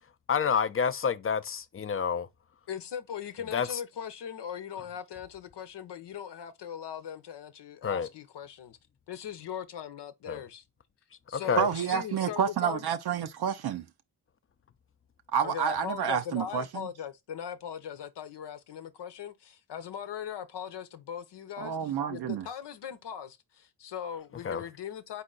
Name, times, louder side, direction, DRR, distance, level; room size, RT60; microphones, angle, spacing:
voice 1, 0.3-2.3 3.5-3.7 7.8-8.1 10.3-10.4 11.3-11.7 24.4-24.6, left 6 dB, 35° left, 0.5 m, -28 dB
voice 2, 2.7-8.8 9.1-10.6 11.3-12.8 15.4-25.2, left 9 dB, 80° left, 0.8 m, -40 dB
voice 3, 11.6-13.8 15.3-16.9 21.6-22.4, right 8 dB, 65° right, 0.6 m, -29 dB
4.3 x 2.7 x 3.8 m
cardioid pair, 55°, 41 cm